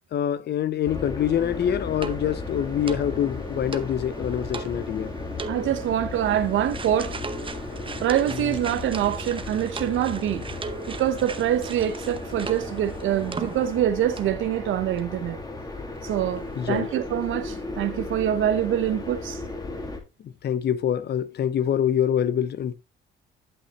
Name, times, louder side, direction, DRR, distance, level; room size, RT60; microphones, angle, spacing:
voice 1, 0.1-5.1 8.4-8.5 16.6-16.9 20.2-22.7, left 9 dB, 55° left, 0.7 m, -25 dB
sound 1, 0.9-20.0, left 3 dB, 20° left, 1.9 m, -35 dB
sound 2, 1.4-13.9 14.2-14.4 15.0-15.1 15.3-15.4, right 4 dB, 25° right, 0.8 m, -39 dB
voice 2, 5.5-7.2 8.0-10.5 11.0-15.4 16.0-19.4, right 11 dB, 80° right, 1.0 m, -25 dB
11.5 x 5.8 x 3.0 m
cardioid pair, 90°, 20 cm